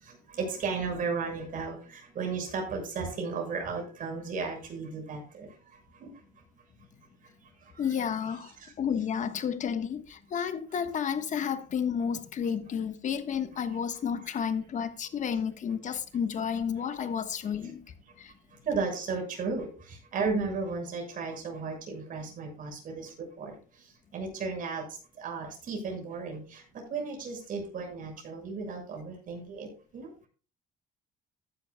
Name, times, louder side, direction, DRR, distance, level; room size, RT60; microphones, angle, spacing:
voice 1, 0.0-5.5 6.0-6.1 7.7-7.9 8.6-8.7 18.6-23.5 24.1-24.9 25.2-29.7 29.9-30.1, right 4 dB, 55° right, 6.4 m, -34 dB
voice 2, 7.8-17.8 18.2-18.3, left 7 dB, 45° left, 1.3 m, -31 dB
14.5 x 11.0 x 2.3 m
cardioid pair, 110°, 17 cm